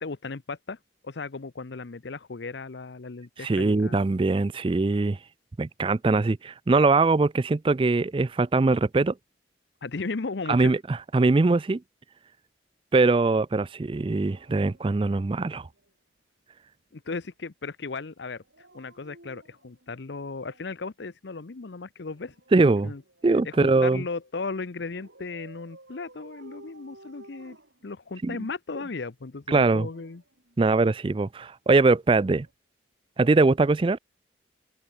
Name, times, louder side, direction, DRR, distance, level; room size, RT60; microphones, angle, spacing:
voice 1, 0.0-4.0 9.8-10.7 16.9-18.4 18.7-23.0 23.4-27.6 27.8-30.2, left 4 dB, 65° left, 0.7 m, -36 dB
voice 2, 3.4-5.2 5.6-9.1 10.5-11.8 12.9-15.7 22.5-22.9 23.2-24.0 28.2-28.4 29.5-29.9 30.6-32.5 33.2-34.0, right 3 dB, 25° right, 0.4 m, -22 dB
Dog, 14.1-15.9 18.4-20.8 22.0-23.7 24.8-28.4 29.4-31.0 32.3-32.5, right 2 dB, 75° right, 7.4 m, -54 dB
open air
head